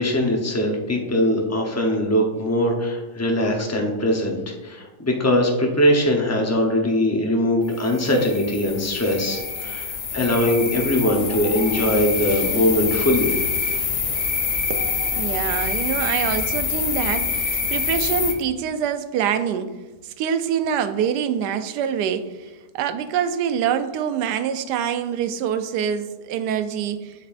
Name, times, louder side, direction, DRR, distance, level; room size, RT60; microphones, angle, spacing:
voice 1, 0.0-13.3, left 1 dB, 25° left, 0 dB, 0.3 m, -21 dB
sound 1, 7.7-18.3, left 5 dB, 80° left, 1.6 m, -26 dB
voice 2, 14.7-19.8 20.0-22.5 22.7-27.1, right 8 dB, 80° right, 10 dB, 1.2 m, -25 dB
7.5 x 7.0 x 2.5 m, 1.2 s
omnidirectional pair, 1.8 m